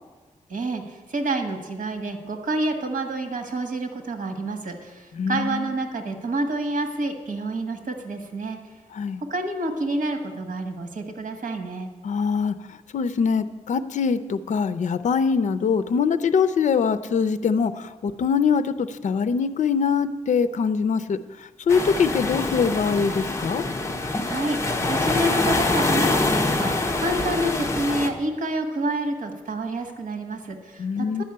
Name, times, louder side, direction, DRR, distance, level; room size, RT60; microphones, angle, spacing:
voice 1, 0.5-0.8 1.1-8.6 9.3-11.9 24.2-31.2, right 1 dB, 90° right, 5 dB, 1.5 m, -28 dB
voice 2, 5.1-5.7 8.9-9.2 12.0-12.5 12.9-21.2 21.7-23.6 30.8-31.2, left 6 dB, 65° left, 12 dB, 0.5 m, -23 dB
sound 1, 21.7-28.1, left 2 dB, 20° left, 0.8 m, -25 dB
11.0 x 5.6 x 8.6 m, 1.3 s
wide cardioid pair, 175°, 13 cm